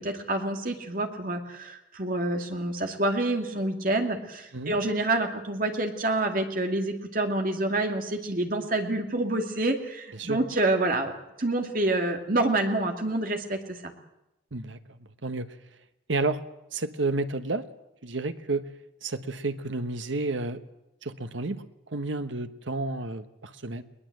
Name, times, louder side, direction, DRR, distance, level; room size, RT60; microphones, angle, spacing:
voice 1, 0.0-11.1 11.4-13.9, right 2 dB, 45° right, 4 dB, 2.3 m, -27 dB
voice 2, 16.1-16.4 16.7-17.6 18.0-18.7 19.0-20.6 21.0-23.8, right 3 dB, 85° right, 10 dB, 1.2 m, -31 dB
21.5 x 20.0 x 7.8 m, 0.91 s
head